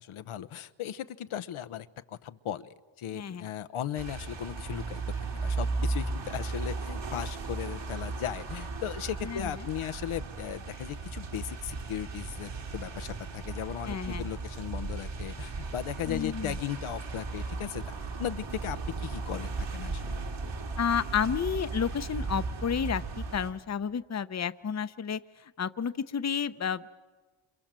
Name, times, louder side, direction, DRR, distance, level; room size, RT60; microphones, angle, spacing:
voice 1, 0.0-17.8 18.2-20.2, left 10 dB, 85° left, 12 dB, 1.0 m, -37 dB
voice 2, 3.1-3.5 9.2-9.5 13.9-14.3 16.0-16.6 20.8-25.2 25.6-26.9, left 7 dB, 35° left, 13 dB, 0.8 m, -31 dB
sound 1, 3.9-23.5, right 3 dB, 60° right, 3.3 m, -36 dB
27.5 x 27.5 x 7.5 m, 1.4 s
wide cardioid pair, 105°, 48 cm